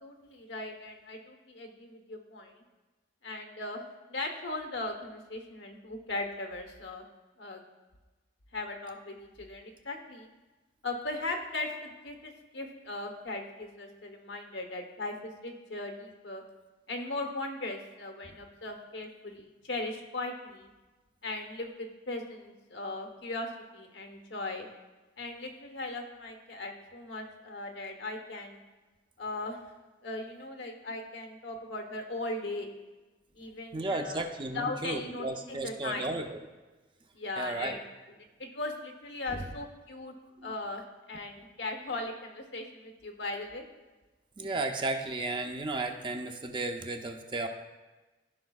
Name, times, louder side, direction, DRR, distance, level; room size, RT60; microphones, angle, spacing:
voice 1, 0.0-2.6 3.2-3.8 4.1-7.1 7.4-7.6 8.5-10.3 10.8-16.4 16.9-20.7 21.2-24.7 25.2-28.6 29.2-29.6 30.0-32.7 33.4-34.2 34.5-36.1 37.1-37.9 38.4-40.1 40.4-43.6, left 2 dB, 90° left, 4 dB, 1.0 m, -38 dB
voice 2, 33.7-36.4 37.4-37.8 39.3-39.5 40.4-40.5 44.4-47.5, right 2 dB, 25° right, 5 dB, 0.5 m, -34 dB
14.0 x 5.1 x 2.3 m, 1.2 s
head